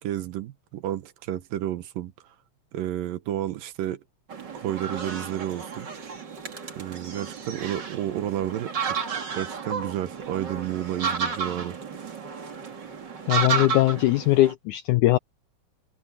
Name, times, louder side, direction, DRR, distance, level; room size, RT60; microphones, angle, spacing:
voice 1, 0.0-2.1 2.7-4.0 4.5-5.9 6.8-9.0 9.3-11.8, right 12 dB, 75° right, 2.7 m, -31 dB
sound 1, 4.3-14.5, right 6 dB, 35° right, 2.3 m, -32 dB
voice 2, 13.3-15.2, left 17 dB, 85° left, 1.7 m, -20 dB
omnidirectional pair, 4.1 m